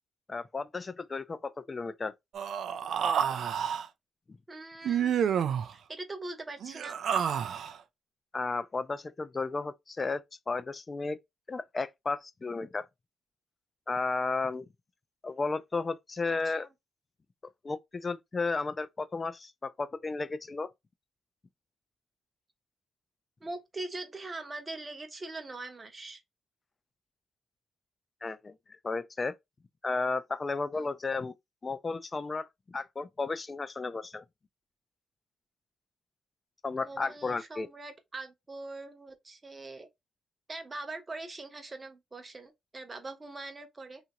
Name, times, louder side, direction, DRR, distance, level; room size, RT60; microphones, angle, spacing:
voice 1, 0.3-2.1 4.3-4.4 8.3-11.2 11.5-12.8 13.9-14.7 15.2-16.7 17.6-20.7 28.2-28.5 28.8-29.3 29.8-31.3 31.6-34.2 36.6-37.7, left 3 dB, 30° left, 0.3 m, -33 dB
Human voice, 2.3-3.8 4.8-5.7 6.6-7.8, right 8 dB, 65° right, 0.3 m, -29 dB
voice 2, 4.5-7.0 16.3-16.5 23.4-26.2 30.7-30.9 36.8-39.9 40.5-44.0, right 2 dB, 25° right, 0.7 m, -42 dB
2.7 x 2.4 x 2.8 m
cardioid pair, 90°, 0 cm